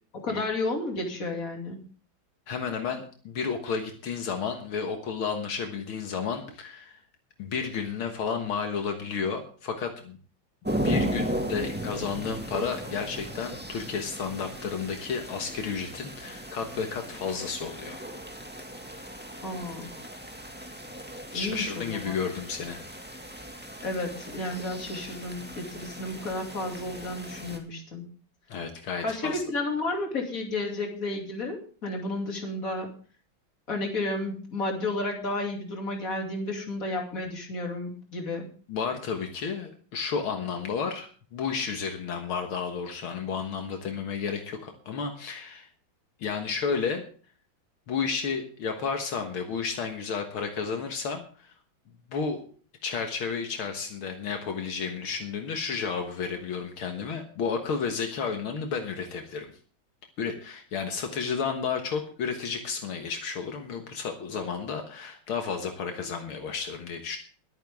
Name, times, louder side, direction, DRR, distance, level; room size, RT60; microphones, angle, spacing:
voice 1, 0.1-1.9 19.4-19.9 21.3-22.2 23.8-28.1 29.0-32.9 33.7-38.5, left 2 dB, 40° left, 2 dB, 3.1 m, -32 dB
voice 2, 2.5-7.0 7.4-10.2 10.7-18.0 21.3-22.9 28.5-29.4 38.7-45.7 46.2-47.0 47.9-51.5 52.1-52.4 52.8-59.5 60.2-67.2, left 5 dB, 80° left, 4 dB, 2.3 m, -32 dB
sound 1, 10.6-27.6, right 1 dB, 5° right, 1.7 m, -36 dB
22.0 x 9.1 x 3.6 m, 0.42 s
omnidirectional pair, 2.3 m